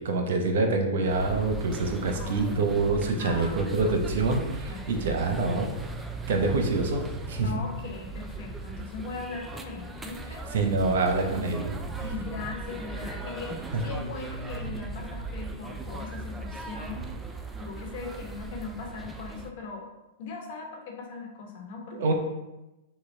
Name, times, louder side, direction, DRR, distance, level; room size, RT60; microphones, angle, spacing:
voice 1, 0.0-5.7 6.3-7.5 10.5-11.7 13.7-13.9 21.9-22.1, right 3 dB, 70° right, 3 dB, 0.8 m, -26 dB
sound 1, 1.1-19.5, right 3 dB, 10° right, 0.4 m, -38 dB
voice 2, 2.2-2.8 3.2-3.8 4.7-5.3 7.4-10.4 11.3-11.5 12.0-17.0 17.6-19.9 20.2-22.1, left 4 dB, 55° left, 1 dB, 1.1 m, -39 dB
6.3 x 2.2 x 3.3 m, 1.0 s
hypercardioid pair, 115°, 0 cm